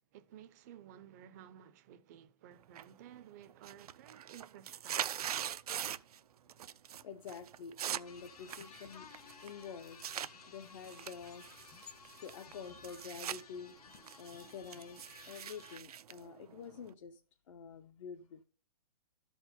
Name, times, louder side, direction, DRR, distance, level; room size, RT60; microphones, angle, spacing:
voice 1, 0.1-5.4, right 10 dB, 30° right, 0.5 m, -55 dB
sound 1, 2.8-3.2 3.5-6.2 6.5-7.0 7.3-10.3 10.8-13.4 13.8-16.9, right 9 dB, 80° right, 0.5 m, -42 dB
voice 2, 7.0-9.1 9.4-11.5 12.2-13.8 14.2-17.2 17.5-18.4, left 6 dB, 55° left, 0.8 m, -48 dB
sound 2, 8.0-15.8, left 6 dB, 85° left, 1.3 m, -56 dB
sound 3, 8.5-12.2 12.5-15.2, left 7 dB, 20° left, 0.6 m, -67 dB
12.5 x 4.6 x 5.6 m
hypercardioid pair, 160°, 19 cm